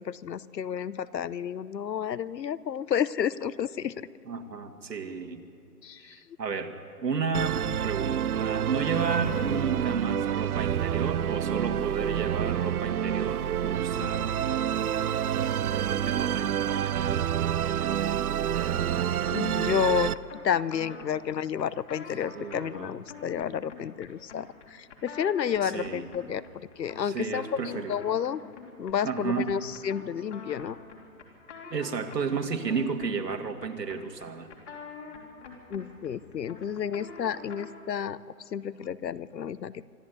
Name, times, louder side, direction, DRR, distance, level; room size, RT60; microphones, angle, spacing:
voice 1, 0.0-4.1 5.8-6.2 14.0-14.1 19.2-20.1 20.4-26.4 26.8-28.4 28.8-30.8 35.7-38.2 38.5-39.7, left 8 dB, 85° left, 19 dB, 0.9 m, -31 dB
voice 2, 4.3-5.4 6.1-14.4 15.6-17.2 17.6-18.3 22.3-23.0 25.6-26.1 27.0-27.9 29.0-29.5 31.7-34.5, right 5 dB, 80° right, 5 dB, 2.2 m, -33 dB
Musical instrument, 7.3-20.1, right 10 dB, 65° right, 0.6 m, -28 dB
sound 1, 18.6-37.8, left 4 dB, 45° left, 3.3 m, -47 dB
25.0 x 13.0 x 8.3 m, 2.5 s
hypercardioid pair, 155°, 49 cm